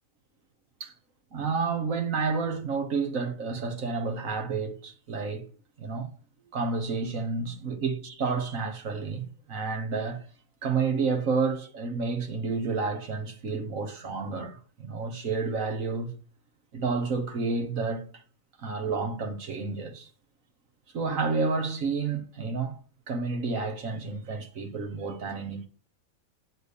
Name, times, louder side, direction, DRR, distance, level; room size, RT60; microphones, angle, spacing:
voice 1, 1.3-5.5 5.8-6.1 6.5-10.2 10.6-16.1 16.7-18.2 18.6-20.1 20.9-22.8 23.1-25.7, right 4 dB, 65° right, 1.8 m, -30 dB
7.2 x 7.0 x 6.7 m
omnidirectional pair, 1.5 m